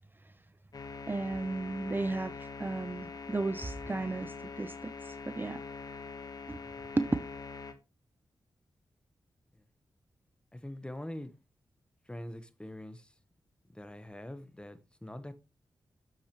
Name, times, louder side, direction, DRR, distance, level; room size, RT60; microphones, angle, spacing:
sound 1, 0.7-7.7, left 4 dB, 50° left, 1.5 m, -43 dB
voice 1, 1.1-5.6 6.5-6.6 7.0-7.1, right 2 dB, 25° right, 0.5 m, -34 dB
voice 2, 10.5-11.4 12.1-13.1 13.7-15.3, left 1 dB, 10° left, 1.2 m, -44 dB
7.4 x 6.7 x 3.1 m
cardioid pair, 50°, 8 cm